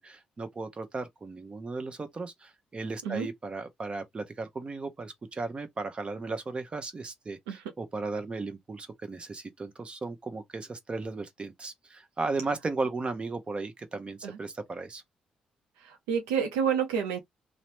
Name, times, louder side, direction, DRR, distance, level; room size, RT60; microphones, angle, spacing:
voice 1, 0.0-15.0, right 3 dB, 35° right, 0.8 m, -36 dB
voice 2, 15.8-17.2, right 7 dB, 90° right, 0.5 m, -29 dB
3.0 x 2.0 x 2.9 m
hypercardioid pair, 50°, 3 cm